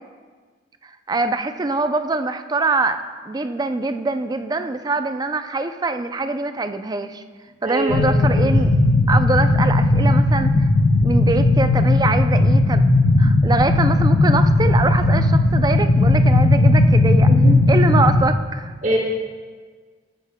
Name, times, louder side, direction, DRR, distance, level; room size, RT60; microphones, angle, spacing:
voice 1, 1.1-7.2 7.6-8.7 9.1-10.5 11.0-12.9 13.2-17.3 17.7-18.7, right 3 dB, 20° right, 9 dB, 0.4 m, -23 dB
voice 2, 7.6-8.5 17.3-17.6 18.8-19.0, right 1 dB, 45° right, -2 dB, 1.2 m, -24 dB
sound 1, 7.9-18.3, left 2 dB, 70° left, 0.6 m, -16 dB
14.5 x 8.3 x 2.2 m, 1.5 s
head